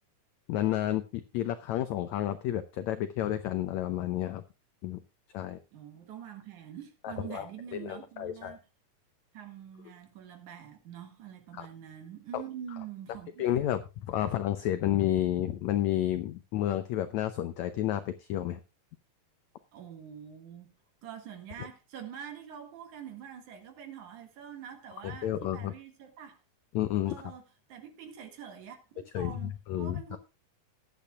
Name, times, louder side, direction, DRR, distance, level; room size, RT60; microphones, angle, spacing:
voice 1, 0.5-4.4 4.8-5.0 5.3-5.6 7.0-7.5 7.8-8.6 11.6-11.7 12.3-12.4 13.4-18.6 25.0-25.7 26.7-27.2 29.1-30.2, left 12 dB, 85° left, 1.6 m, -31 dB
voice 2, 5.7-8.6 9.3-13.4 19.7-20.7 21.0-26.4 27.1-27.4 27.7-30.2, right 9 dB, 60° right, 3.1 m, -45 dB
20.5 x 8.7 x 2.4 m
omnidirectional pair, 4.1 m